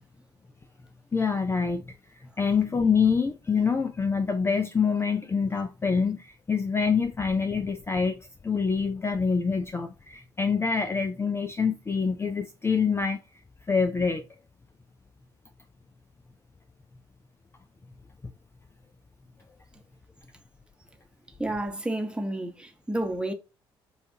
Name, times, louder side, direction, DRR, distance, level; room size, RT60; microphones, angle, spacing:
voice 1, 1.1-13.2 13.7-14.2, left 5 dB, 20° left, 0.5 m, -26 dB
voice 2, 21.4-23.3, right 1 dB, 5° right, 1.0 m, -30 dB
6.8 x 2.4 x 2.8 m
figure-of-eight pair, 50°, 13 cm